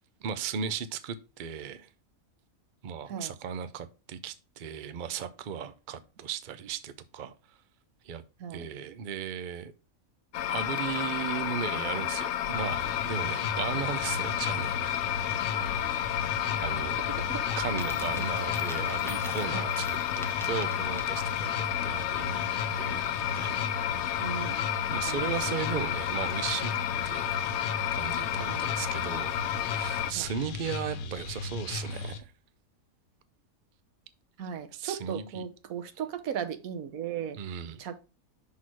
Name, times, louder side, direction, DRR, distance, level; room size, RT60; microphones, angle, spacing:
voice 1, 0.2-1.9 2.8-7.3 8.0-8.2 8.5-9.7 10.5-15.0 16.6-17.0 17.6-22.5 22.7-23.7 24.9-26.7 27.0-27.3 27.9-32.3 34.7-35.4 37.3-37.8, right 7 dB, 50° right, 0.6 m, -36 dB
sound 1, 10.3-30.1, left 11 dB, 65° left, 0.7 m, -31 dB
sound 2, 12.5-32.2, left 4 dB, 85° left, 1.2 m, -37 dB
voice 2, 17.1-17.6 19.5-19.7 24.2-24.6 25.1-25.9 28.5-28.7 30.1-30.3 34.4-37.4 37.8-38.0, right 8 dB, 85° right, 1.3 m, -37 dB
Coin (dropping), 17.7-21.6, equal, ahead, 0.9 m, -45 dB
6.2 x 3.8 x 6.1 m
omnidirectional pair, 1.5 m